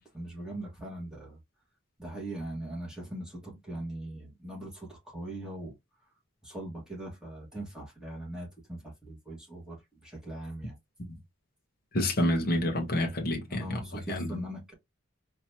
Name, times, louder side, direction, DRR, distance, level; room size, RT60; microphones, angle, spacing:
voice 1, 0.0-1.4 2.0-5.8 6.4-10.8 13.5-14.7, right 1 dB, 5° right, 1.9 m, -40 dB
voice 2, 11.9-13.6 13.9-14.4, left 1 dB, 50° left, 1.1 m, -28 dB
4.3 x 2.9 x 2.8 m
head